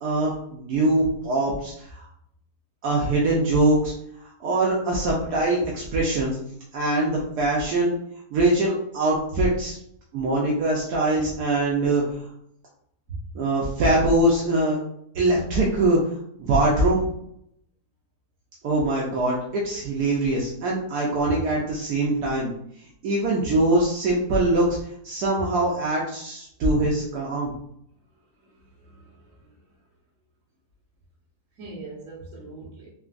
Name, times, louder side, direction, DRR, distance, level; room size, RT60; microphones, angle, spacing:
voice 1, 0.0-2.1 2.8-3.9 4.2-6.3 6.7-7.9 8.3-9.8 10.1-12.2 13.3-14.8 15.1-16.0 16.4-17.1 18.6-22.5 23.0-24.8 25.0-27.5, right 2 dB, 75° right, -3 dB, 1.2 m, -23 dB
voice 2, 28.4-29.5 31.6-32.9, right 3 dB, 55° right, -6 dB, 1.6 m, -40 dB
3.6 x 2.9 x 2.5 m, 0.71 s
omnidirectional pair, 1.7 m